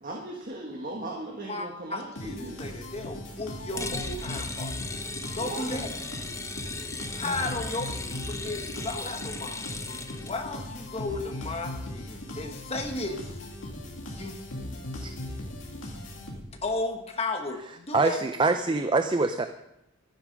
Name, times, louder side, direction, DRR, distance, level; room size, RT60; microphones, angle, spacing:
voice 1, 0.0-2.6 5.4-5.7, right 2 dB, 45° right, 0 dB, 1.6 m, -37 dB
voice 2, 1.4-4.7 5.3-5.9 7.1-9.6 10.2-13.4 14.1-14.4 16.6-18.2, left 2 dB, 30° left, 4 dB, 1.3 m, -34 dB
sound 1, 2.1-16.7, left 1 dB, 70° left, 2.6 m, -39 dB
sound 2, 3.7-10.4, left 3 dB, 15° left, 0.7 m, -37 dB
voice 3, 17.9-19.5, right 3 dB, 25° right, 8 dB, 0.5 m, -24 dB
12.5 x 9.9 x 5.2 m, 0.86 s
head